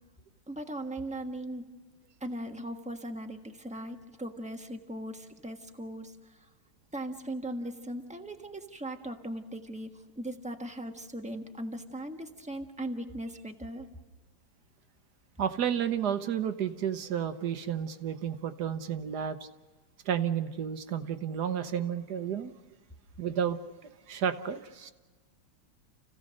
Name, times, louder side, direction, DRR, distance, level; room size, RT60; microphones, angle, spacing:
voice 1, 0.5-1.6 2.2-6.3 6.9-9.9 10.2-13.9, right 1 dB, 5° right, 4 dB, 1.0 m, -38 dB
voice 2, 15.4-19.4 20.0-22.5 23.2-23.6 24.1-24.9, right 8 dB, 60° right, 10 dB, 1.4 m, -31 dB
29.5 x 16.5 x 6.4 m, 1.3 s
omnidirectional pair, 2.3 m